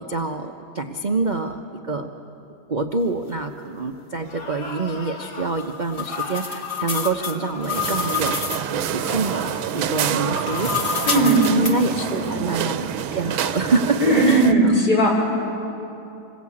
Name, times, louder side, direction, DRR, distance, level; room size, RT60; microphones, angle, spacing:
voice 1, 0.0-2.2 2.7-10.7 11.1-14.0 14.3-14.8, right 3 dB, 45° right, 4 dB, 0.6 m, -26 dB
sound 1, 4.2-5.5 6.1-8.3 9.0-9.8 10.4-12.9, left 2 dB, 85° left, 3.8 m, -38 dB
sound 2, 5.4-8.7 10.1-11.7, left 6 dB, 35° left, 1.6 m, -28 dB
sound 3, 7.7-14.5, right 10 dB, 85° right, 1.6 m, -27 dB
voice 2, 11.1-11.4 12.1-12.3 14.0-15.1, right 1 dB, 55° left, -2 dB, 5.8 m, -17 dB
27.0 x 20.5 x 8.7 m, 2.9 s
omnidirectional pair, 2.2 m